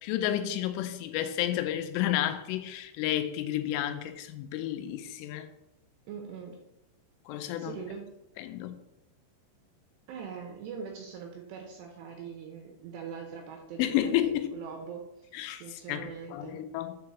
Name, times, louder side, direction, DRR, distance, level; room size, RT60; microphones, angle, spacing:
voice 1, 0.0-5.5 7.3-7.8 8.4-8.8 13.8-14.5 15.3-17.0, left 12 dB, 85° left, 9 dB, 3.1 m, -31 dB
voice 2, 6.1-6.6 7.5-8.1 10.1-15.3 15.6-16.6, right 6 dB, 80° right, 2 dB, 2.6 m, -42 dB
6.7 x 4.7 x 6.6 m, 0.86 s
omnidirectional pair, 5.7 m